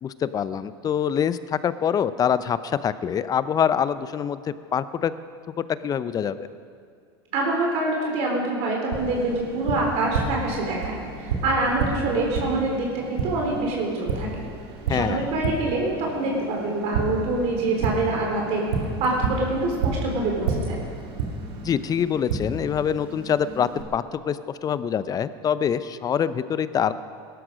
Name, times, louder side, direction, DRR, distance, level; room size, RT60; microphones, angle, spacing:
voice 1, 0.0-4.4 4.7-5.1 5.8-6.5 14.9-15.2 21.6-26.9, left 8 dB, 30° left, 14 dB, 0.6 m, -25 dB
voice 2, 7.3-14.4 14.9-18.7 19.0-20.8, right 2 dB, 55° right, -1 dB, 3.6 m, -25 dB
Tap, 8.9-23.8, right 4 dB, 80° right, 2.3 m, -31 dB
18.0 x 12.5 x 5.1 m, 2.2 s
hypercardioid pair, 100°, 13 cm